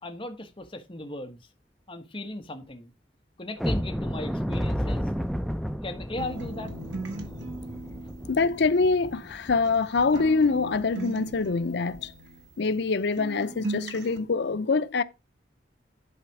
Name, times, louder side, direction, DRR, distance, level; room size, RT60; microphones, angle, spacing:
voice 1, 0.0-1.4 1.9-2.9 3.4-5.1 5.8-6.7, left 1 dB, 30° left, 1.3 m, -37 dB
sound 1, 3.6-10.3 10.7-10.8 11.3-11.4 11.9-12.1, equal, ahead, 0.5 m, -32 dB
sound 2, 6.2-9.8 10.1-12.9 13.2-14.2, right 2 dB, 80° right, 1.7 m, -39 dB
voice 2, 8.3-12.1 12.6-15.0, left 4 dB, 70° left, 0.6 m, -25 dB
11.0 x 4.2 x 4.7 m
head